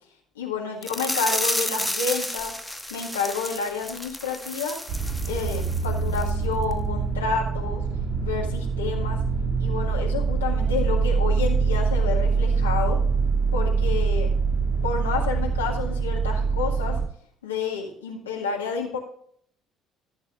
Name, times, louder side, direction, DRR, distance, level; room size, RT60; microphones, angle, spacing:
voice 1, 0.4-2.5 2.9-4.8 5.3-7.8 8.2-9.2 9.6-13.0 13.5-14.3 14.8-16.9 17.4-19.0, left 5 dB, 80° left, -1 dB, 1.8 m, -29 dB
sound 1, 0.8-5.9 6.1-6.3 6.7-6.8, left 1 dB, 5° left, 1.0 m, -31 dB
sound 2, 4.9-17.0, right 5 dB, 40° right, 1.9 m, -24 dB
15.0 x 7.4 x 2.5 m, 0.62 s
figure-of-eight pair, 50°, 0 cm